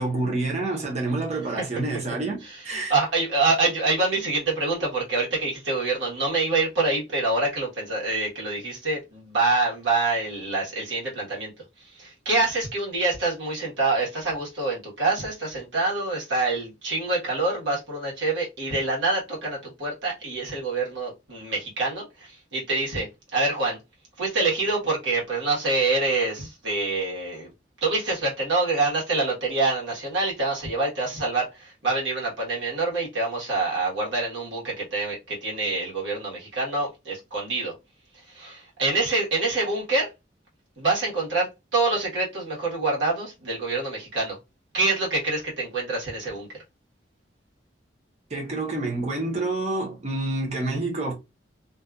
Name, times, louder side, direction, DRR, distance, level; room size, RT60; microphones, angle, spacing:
voice 1, 0.0-2.9 48.3-51.1, right 2 dB, 35° right, 0.8 m, -28 dB
voice 2, 2.7-11.5 12.0-23.8 24.2-27.5 27.8-37.7 38.3-40.1 40.8-44.4 44.7-46.5, right 3 dB, 85° right, 1.3 m, -26 dB
2.6 x 2.4 x 2.3 m
head